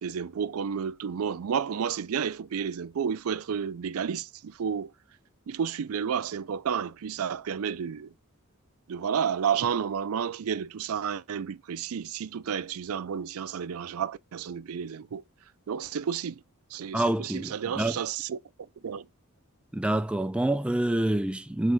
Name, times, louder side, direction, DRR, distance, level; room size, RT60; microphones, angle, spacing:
voice 1, 0.0-4.9 5.5-8.1 8.9-15.2 15.7-16.4 16.7-18.4 18.8-19.0, right 7 dB, 85° right, 0.4 m, -31 dB
voice 2, 16.9-18.0 19.7-21.7, right 1 dB, 5° right, 0.3 m, -27 dB
6.4 x 3.6 x 4.4 m
head